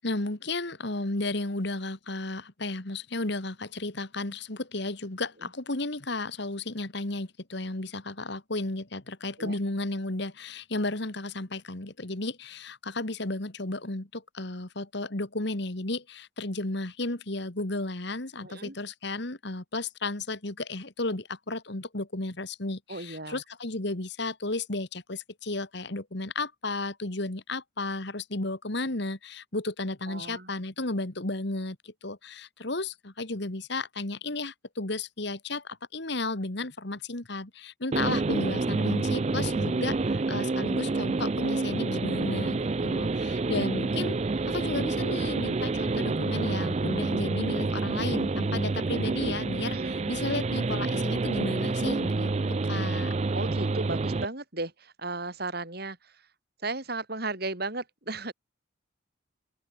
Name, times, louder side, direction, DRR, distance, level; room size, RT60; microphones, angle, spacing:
voice 1, 0.0-44.2 44.5-53.1, left 2 dB, 55° left, 1.9 m, -33 dB
voice 2, 18.4-18.8 22.9-23.4 30.1-30.5 44.3-44.6 49.7-50.0 53.3-56.1 56.6-58.3, right 2 dB, 50° right, 3.9 m, -35 dB
sound 1, 37.9-54.3, right 3 dB, 30° right, 0.4 m, -28 dB
open air
head